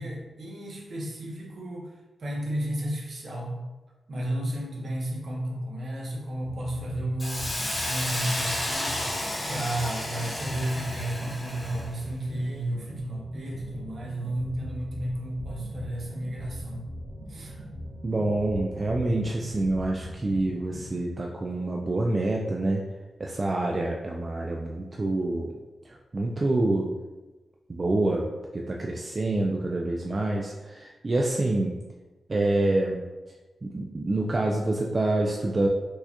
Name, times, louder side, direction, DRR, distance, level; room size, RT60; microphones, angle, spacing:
voice 1, 0.0-1.9 2.2-3.5 4.1-7.5 7.8-9.2 9.5-16.9 17.3-17.5, right 1 dB, 60° right, -1 dB, 0.8 m, -32 dB
sound 1, 6.4-20.9, equal, 85° right, 1.2 m, -41 dB
Hiss, 7.2-11.9, left 1 dB, 30° left, 0.9 m, -32 dB
voice 2, 18.0-22.8 23.2-25.5 26.1-26.9 27.7-28.3 28.5-31.7 32.3-33.0 33.6-35.7, right 2 dB, 35° right, -1 dB, 0.3 m, -26 dB
4.5 x 2.2 x 2.9 m, 1.1 s
cardioid pair, 80°, 0 cm